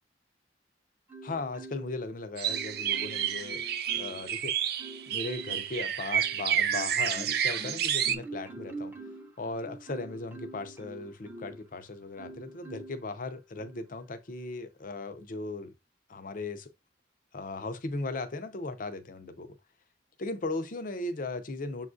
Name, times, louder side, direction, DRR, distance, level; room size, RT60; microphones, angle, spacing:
Marimba xylophone, 1.1-2.1 2.5-4.3 4.8-5.7 6.2-11.7 12.2-13.0 13.6-13.8, right 2 dB, 10° right, 0.7 m, -45 dB
voice 1, 1.2-3.6 3.9-4.8 5.1-8.9 9.4-15.7 16.1-16.7 17.3-19.5 20.2-21.9, left 2 dB, 50° left, 0.6 m, -37 dB
sound 1, 2.4-8.2, right 9 dB, 60° right, 0.5 m, -30 dB
7.0 x 2.4 x 2.5 m
head